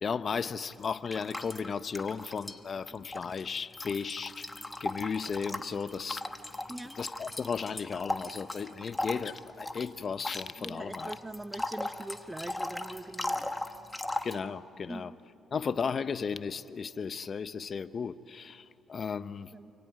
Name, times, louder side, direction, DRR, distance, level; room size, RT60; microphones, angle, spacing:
voice 1, 0.0-4.5 4.8-6.2 7.0-11.1 14.2-15.1 15.5-19.5, left 6 dB, 45° left, 0.8 m, -35 dB
sound 1, 0.7-2.6 2.9-14.4, left 2 dB, 10° left, 1.3 m, -38 dB
voice 2, 10.6-13.6 14.9-15.2 19.5-19.7, right 1 dB, 15° right, 1.0 m, -42 dB
29.0 x 22.0 x 9.2 m
cardioid pair, 90°, 0 cm